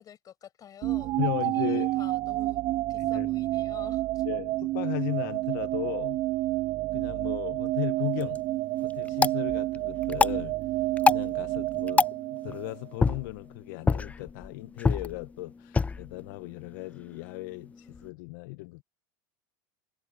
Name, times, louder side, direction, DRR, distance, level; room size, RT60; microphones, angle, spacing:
voice 1, 0.0-1.2 1.4-4.2, left 9 dB, 35° left, 7.4 m, -48 dB
sound 1, 0.8-12.9, right 18 dB, 45° right, 0.4 m, -29 dB
voice 2, 1.2-1.9 3.0-3.3 4.2-6.2 6.9-8.4 8.8-10.5 11.1-12.1 12.4-18.8, left 21 dB, 70° left, 1.1 m, -36 dB
sound 2, 8.0-18.1, left 4 dB, 15° left, 0.5 m, -30 dB
supercardioid pair, 115°, 10 cm